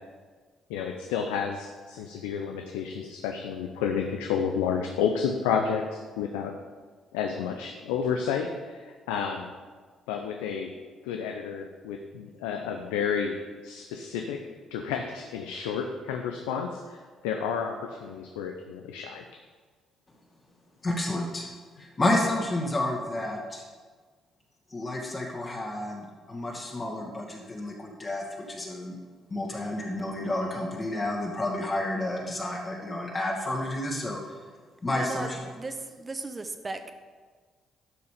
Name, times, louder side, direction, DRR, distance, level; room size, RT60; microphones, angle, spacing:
voice 1, 0.7-6.5 7.1-9.5 10.1-10.7 11.0-13.4 13.6-14.4 14.7-16.8 17.2-19.2, left 7 dB, 85° left, 4 dB, 0.6 m, -30 dB
voice 2, 20.8-21.5 21.8-23.6 24.7-29.0 29.3-34.4 34.8-35.5, left 1 dB, 35° left, -3 dB, 2.3 m, -30 dB
voice 3, 34.9-35.3 35.6-36.8, right 3 dB, 30° right, 8 dB, 1.1 m, -36 dB
11.0 x 6.0 x 5.1 m, 1.5 s
hypercardioid pair, 55°, 0 cm